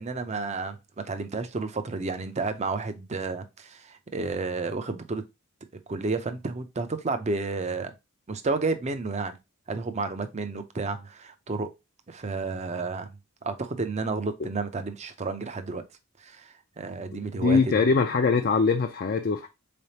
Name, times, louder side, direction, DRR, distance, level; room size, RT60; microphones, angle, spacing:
voice 1, 0.0-5.2 5.9-7.9 8.3-9.4 9.7-11.7 12.1-13.1 13.4-15.8 16.2-17.9, right 3 dB, 30° right, 0.5 m, -31 dB
voice 2, 17.3-19.5, left 4 dB, 45° left, 0.4 m, -22 dB
3.9 x 3.3 x 2.7 m
head